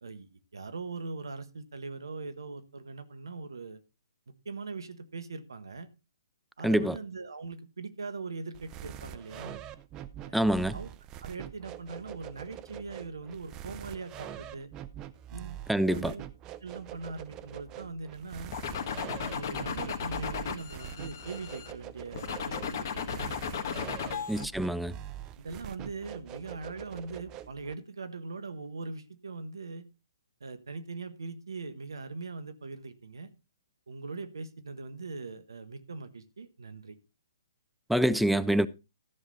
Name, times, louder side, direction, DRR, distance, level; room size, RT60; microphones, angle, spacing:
voice 1, 0.0-3.8 4.4-5.9 6.6-9.6 10.2-10.5 10.7-10.9 11.2-14.7 15.3-16.3 16.6-18.5 19.2-23.4 24.0-24.3 24.9-25.0 25.4-29.8 30.4-33.3 33.9-37.0, right 4 dB, 75° right, 1.4 m, -41 dB
voice 2, 6.6-7.0 10.3-10.8 15.7-16.1 24.3-24.9 37.9-38.7, right 1 dB, ahead, 0.4 m, -26 dB
sound 1, 8.5-27.7, right 11 dB, 25° right, 0.8 m, -44 dB
sound 2, 18.5-21.7 22.1-24.4, left 6 dB, 45° left, 1.7 m, -35 dB
14.0 x 7.3 x 4.0 m
figure-of-eight pair, 125°, 2 cm